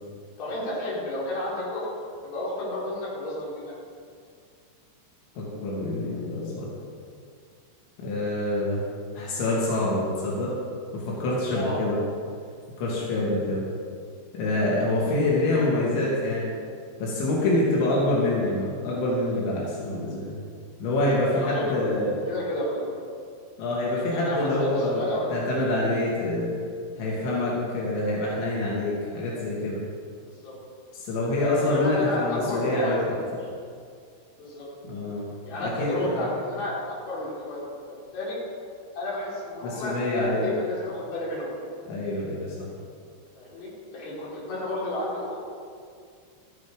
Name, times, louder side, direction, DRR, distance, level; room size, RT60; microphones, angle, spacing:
voice 1, 0.4-1.9 2.2-3.7 11.5-11.8 21.3-22.9 23.9-25.5 30.2-30.5 31.4-33.0 34.3-34.7 35.4-37.6 37.9-38.4 38.9-41.5 43.3-45.4, left 1 dB, 55° left, -7 dB, 5.9 m, -32 dB
voice 2, 5.4-6.7 8.0-8.8 9.1-10.5 10.9-12.0 12.8-13.6 14.3-16.5 17.0-20.3 20.8-22.1 23.6-26.5 27.0-29.8 30.9-33.1 34.8-35.2 35.6-36.3 39.6-40.5 41.9-42.7, left 1 dB, 90° left, -6 dB, 4.9 m, -26 dB
13.5 x 13.5 x 5.2 m, 2.2 s
omnidirectional pair, 5.1 m